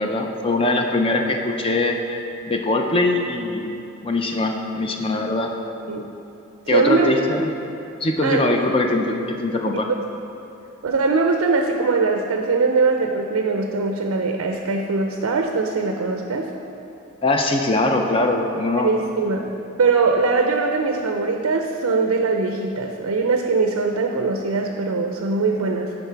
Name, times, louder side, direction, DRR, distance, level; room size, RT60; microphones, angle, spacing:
voice 1, 0.0-2.0 2.5-3.8 4.0-5.5 6.7-7.5 8.0-9.1 9.4-9.9 17.2-18.9, left 2 dB, 25° left, 3 dB, 0.4 m, -21 dB
voice 2, 6.7-7.1 8.2-8.4 9.7-9.8 10.8-16.5 18.8-19.5 19.8-26.0, right 4 dB, 85° right, 3 dB, 0.5 m, -21 dB
10.5 x 4.0 x 4.5 m, 2.8 s
head